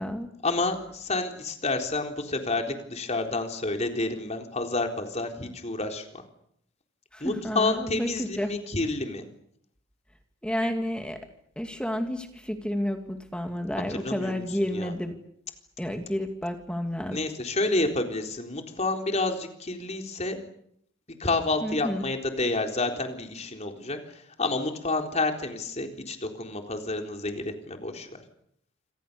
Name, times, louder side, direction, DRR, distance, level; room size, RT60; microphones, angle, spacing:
voice 1, 0.4-6.2 7.2-9.2 13.9-14.4 14.7-14.9 17.1-20.4 21.2-24.0 24.4-28.1, left 2 dB, 30° left, 4 dB, 3.9 m, -29 dB
voice 2, 7.1-8.5 10.4-11.2 11.6-15.1 15.8-17.2 21.6-22.1, equal, 5° left, 5 dB, 2.4 m, -30 dB
28.5 x 26.0 x 6.9 m, 0.72 s
head